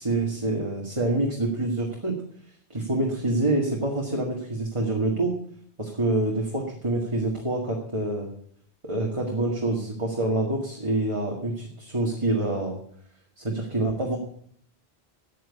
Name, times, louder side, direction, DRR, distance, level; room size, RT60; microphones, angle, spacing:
voice 1, 0.0-2.2 2.7-5.3 5.8-8.3 8.8-12.8 13.4-14.2, right 2 dB, 30° right, -1 dB, 2.0 m, -26 dB
9.3 x 9.2 x 8.4 m, 0.64 s
omnidirectional pair, 1.1 m